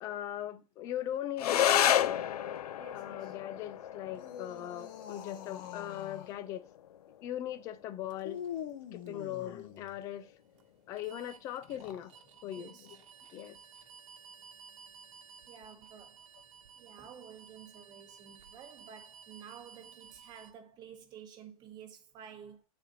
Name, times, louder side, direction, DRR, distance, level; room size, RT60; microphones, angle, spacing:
voice 1, 0.0-2.2 2.9-6.6 7.2-8.4 8.9-10.3 10.9-12.1 12.4-13.0 13.3-13.6, left 11 dB, 15° left, 0.3 m, -40 dB
sound 1, 1.4-10.4, left 10 dB, 85° left, 0.6 m, -33 dB
voice 2, 2.8-3.4 9.0-9.4 12.5-13.0 15.5-16.2 16.8-22.6, right 8 dB, 20° right, 1.1 m, -52 dB
sound 2, 4.1-6.4 8.2-10.0 11.6-12.2, left 9 dB, 35° left, 0.7 m, -44 dB
sound 3, 8.0-20.5, right 6 dB, 60° right, 1.1 m, -56 dB
8.8 x 4.2 x 4.0 m
supercardioid pair, 165°, 20 cm